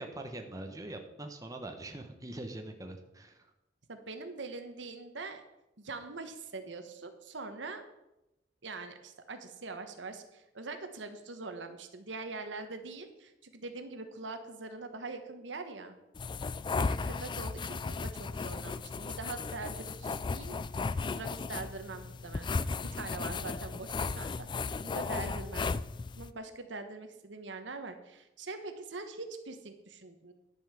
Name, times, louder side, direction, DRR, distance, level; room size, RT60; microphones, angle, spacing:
voice 1, 0.0-3.5 16.6-16.8, right 2 dB, 20° right, 4 dB, 0.9 m, -43 dB
voice 2, 3.9-5.4 5.8-7.8 8.6-16.0 16.7-20.6 21.1-22.5 22.8-25.7 26.2-30.3, right 3 dB, 75° right, 7 dB, 1.2 m, -43 dB
sound 1, 16.1-26.3, left 4 dB, 25° left, 0.3 m, -35 dB
11.0 x 5.5 x 7.0 m, 0.92 s
head